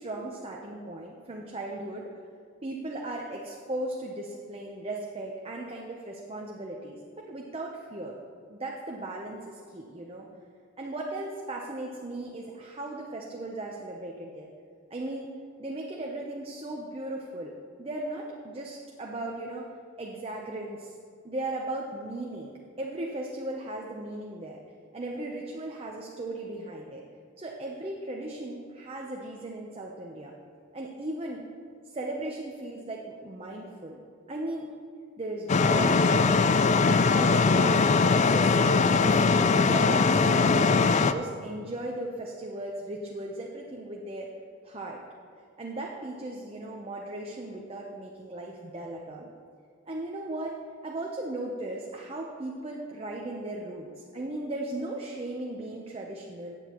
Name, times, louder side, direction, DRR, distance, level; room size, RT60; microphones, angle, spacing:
voice 1, 0.0-2.1 2.6-7.0 7.2-8.2 8.5-10.3 10.8-14.5 14.9-15.3 15.6-17.5 17.8-19.7 20.0-20.9 21.2-24.6 24.9-27.0 27.4-30.3 30.7-31.4 31.9-34.0 34.3-34.7 35.2-36.3 36.8-44.3 44.6-45.0 45.6-49.3 49.9-50.5 50.8-53.9 54.1-56.5, right 2 dB, 30° right, -1 dB, 0.8 m, -37 dB
sound 1, 35.5-41.1, left 4 dB, 35° left, 0.3 m, -21 dB
15.5 x 8.9 x 3.0 m, 2.2 s
head